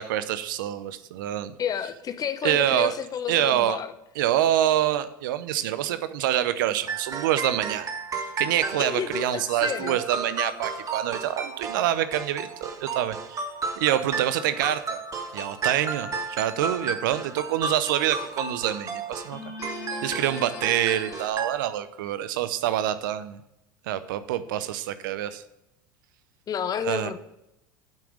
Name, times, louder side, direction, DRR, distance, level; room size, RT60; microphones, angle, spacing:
voice 1, 0.0-1.5 2.4-2.9 3.3-3.8 4.2-7.9 8.4-13.5 13.8-15.0 15.3-19.4 19.7-23.4 23.9-25.4 26.8-27.1, right 12 dB, 70° right, 13 dB, 0.7 m, -26 dB
voice 2, 1.6-3.9 8.8-10.0 26.5-27.2, left 8 dB, 35° left, 11 dB, 0.9 m, -30 dB
sound 1, 6.9-21.5, right 4 dB, 30° right, 1.6 m, -33 dB
sound 2, 15.3-15.9 19.3-21.3, left 3 dB, 65° left, 2.5 m, -39 dB
8.9 x 5.9 x 6.5 m, 0.86 s
hypercardioid pair, 80°, 11 cm